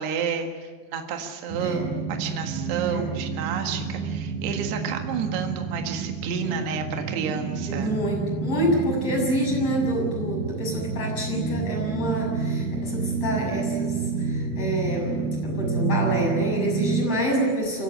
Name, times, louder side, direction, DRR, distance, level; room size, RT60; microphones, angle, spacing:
voice 1, 0.0-7.9, right 7 dB, 65° right, 4 dB, 3.6 m, -30 dB
sound 1, 1.5-17.1, right 4 dB, 50° right, 7.9 m, -29 dB
voice 2, 7.7-17.8, right 1 dB, 30° left, -1 dB, 7.8 m, -27 dB
24.0 x 17.0 x 9.9 m, 1.5 s
omnidirectional pair, 5.3 m